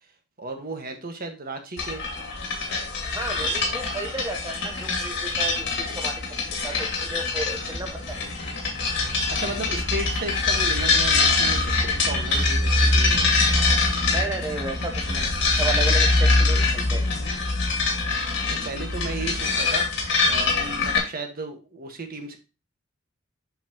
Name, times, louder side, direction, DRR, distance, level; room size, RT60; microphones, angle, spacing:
voice 1, 0.4-2.0 9.4-13.2 18.6-19.8 20.2-22.4, right 2 dB, 50° right, 5 dB, 1.4 m, -34 dB
sound 1, 1.8-21.0, left 3 dB, 65° left, 2.2 m, -23 dB
voice 2, 3.1-8.2 14.1-17.0, right 2 dB, 15° right, 3 dB, 0.7 m, -33 dB
7.6 x 5.8 x 2.9 m, 0.31 s
head